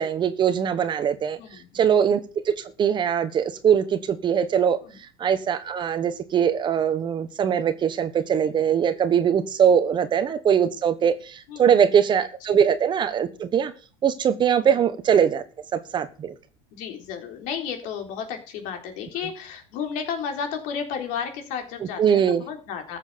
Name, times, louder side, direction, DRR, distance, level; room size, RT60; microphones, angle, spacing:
voice 1, 0.0-1.4 1.7-2.2 2.4-4.8 5.2-13.7 14.0-15.4 15.7-16.3 22.0-22.4, right 8 dB, 30° right, 1.2 m, -21 dB
voice 2, 1.4-1.8 4.8-5.0 11.5-11.9 12.5-12.6 14.6-14.8 16.7-23.0, left 7 dB, 60° left, 3.8 m, -33 dB
14.0 x 7.3 x 6.9 m
supercardioid pair, 115°, 15 cm